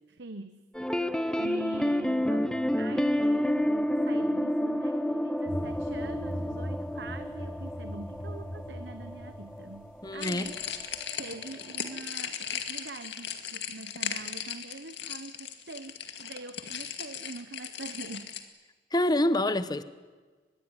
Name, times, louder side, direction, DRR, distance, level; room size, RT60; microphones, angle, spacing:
voice 1, 0.1-0.6 1.4-10.5 11.2-18.4, right 2 dB, 75° right, 10 dB, 1.0 m, -44 dB
sound 1, 0.8-10.7 10.9-11.1 11.4-11.5 11.9-12.0, equal, 5° left, 0.8 m, -30 dB
sound 2, 5.5-11.0, equal, 55° left, 6.4 m, -40 dB
voice 2, 10.0-10.5 18.9-19.8, left 1 dB, 25° left, 13 dB, 1.1 m, -26 dB
sound 3, 10.2-18.4, left 8 dB, 75° left, 2.3 m, -37 dB
24.0 x 21.5 x 9.9 m, 1.4 s
head